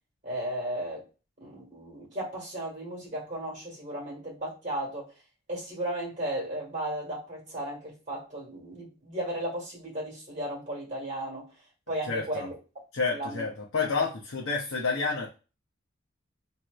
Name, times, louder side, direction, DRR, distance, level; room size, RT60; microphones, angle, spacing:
voice 1, 0.2-1.0 1.4-5.1 5.5-11.5 11.9-12.5 13.1-13.4, right 1 dB, 35° right, 1.7 m, -35 dB
voice 2, 12.0-12.5 12.9-15.3, left 4 dB, 80° left, 0.7 m, -29 dB
3.0 x 2.9 x 2.3 m
head